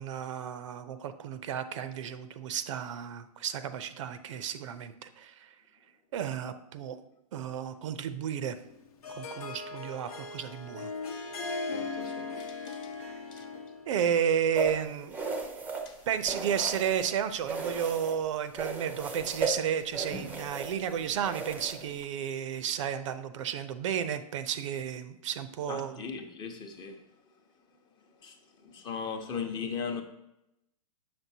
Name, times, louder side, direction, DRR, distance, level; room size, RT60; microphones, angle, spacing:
voice 1, 0.0-5.5 6.1-7.0 7.3-8.6 9.1-10.9 13.0-13.1 13.9-15.2 16.1-26.0, right 8 dB, 55° right, 0.5 m, -32 dB
Harp, 8.6-13.9, left 4 dB, 75° left, 0.9 m, -38 dB
voice 2, 11.6-12.9 13.3-13.4 15.8-16.0 25.7-27.0 28.2-28.4 28.6-30.0, left 6 dB, 25° left, 0.8 m, -38 dB
sound 1, 14.5-17.1 17.4-18.2 18.5-22.0, right 4 dB, 10° right, 0.6 m, -36 dB
7.5 x 6.0 x 2.7 m
hypercardioid pair, 140°, 19 cm